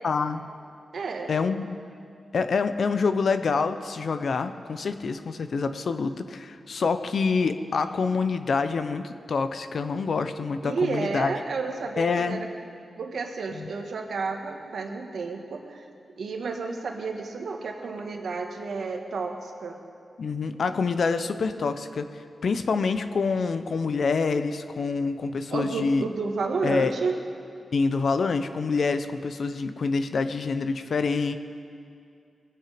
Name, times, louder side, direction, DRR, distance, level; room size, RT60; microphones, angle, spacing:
voice 1, 0.0-0.4 1.3-1.8 2.3-11.3 12.0-12.4 13.5-13.7 20.2-26.1 26.6-26.9 27.7-31.4, left 4 dB, 65° left, 10 dB, 0.7 m, -26 dB
voice 2, 0.9-1.3 10.6-12.5 13.0-15.8 16.2-19.8 25.5-27.2, right 4 dB, 75° right, 3 dB, 1.6 m, -31 dB
21.0 x 8.7 x 5.1 m, 2.5 s
cardioid pair, 80°, 0 cm